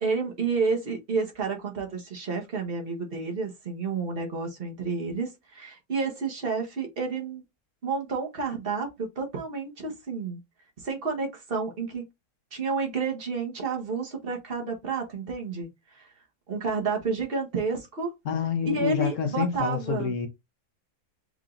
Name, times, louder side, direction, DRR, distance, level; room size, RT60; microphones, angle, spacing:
voice 1, 0.0-7.4 7.8-10.4 10.8-12.0 12.5-16.1 16.5-18.1 18.6-20.1, right 4 dB, 40° right, 1.3 m, -30 dB
voice 2, 18.2-20.3, left 6 dB, 55° left, 1.2 m, -27 dB
4.9 x 2.7 x 3.7 m
omnidirectional pair, 1.7 m